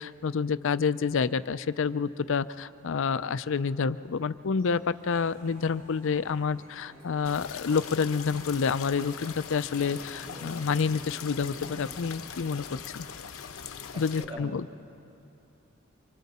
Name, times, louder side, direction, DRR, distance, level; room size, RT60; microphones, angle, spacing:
voice 1, 0.0-13.1 14.0-14.7, left 5 dB, 65° left, 15 dB, 0.5 m, -28 dB
sound 1, 4.6-12.4, right 1 dB, 85° right, 7.0 m, -50 dB
sound 2, 7.2-14.2, left 7 dB, 80° left, 0.9 m, -41 dB
voice 2, 13.6-14.8, right 1 dB, 30° right, 0 dB, 2.5 m, -44 dB
27.5 x 25.0 x 4.2 m, 2.8 s
head